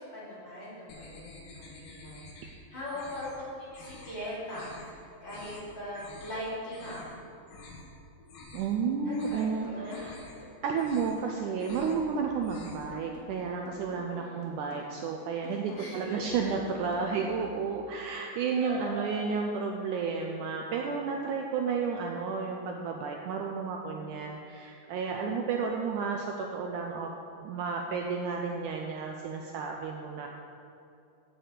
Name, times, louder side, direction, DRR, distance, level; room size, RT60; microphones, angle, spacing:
voice 1, 0.0-7.2 9.0-10.1 14.0-14.5 15.5-17.2 18.5-19.3, left 1 dB, 35° left, -9 dB, 3.4 m, -41 dB
sound 1, 0.9-2.6 2.9-3.4 3.7-4.1 4.5-4.9 5.2-5.6 5.9-6.4 6.7-7.1 7.5-7.9 8.2-8.8 9.1-9.5 9.8-10.4 10.7-11.2 11.5-12.0 12.3-12.9, left 3 dB, 75° left, 2.8 m, -49 dB
voice 2, 8.5-9.7 10.0-10.2 10.6-27.1 27.4-30.3, right 5 dB, 75° right, 2 dB, 1.9 m, -32 dB
sound 2, 9.6-17.6, left 2 dB, 55° left, 2.4 m, -49 dB
8.9 x 6.1 x 8.2 m, 2.7 s
omnidirectional pair, 4.0 m